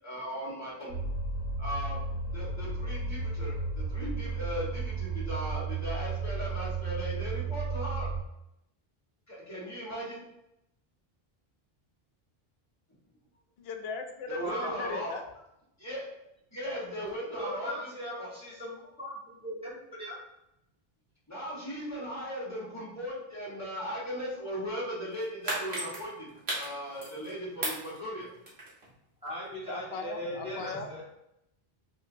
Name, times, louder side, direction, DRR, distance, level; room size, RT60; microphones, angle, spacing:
voice 1, 0.0-1.0 1.6-2.0 2.3-8.1 9.3-10.2 14.3-15.1 15.8-16.0 16.5-17.9 18.2-18.3 21.3-28.3, equal, 15° left, -7 dB, 1.3 m, -37 dB
sound 1, 0.9-8.2, right 3 dB, 45° right, 0.7 m, -33 dB
voice 2, 13.6-15.2 29.7-30.9, left 4 dB, 75° left, 5 dB, 0.8 m, -38 dB
voice 3, 14.4-14.8 17.4-20.2 29.2-31.0, equal, 5° right, -8 dB, 1.3 m, -38 dB
sound 2, 25.1-27.3 27.6-28.9 29.3-29.4, right 1 dB, 90° right, 1.3 m, -35 dB
4.1 x 2.8 x 2.5 m, 0.83 s
omnidirectional pair, 1.0 m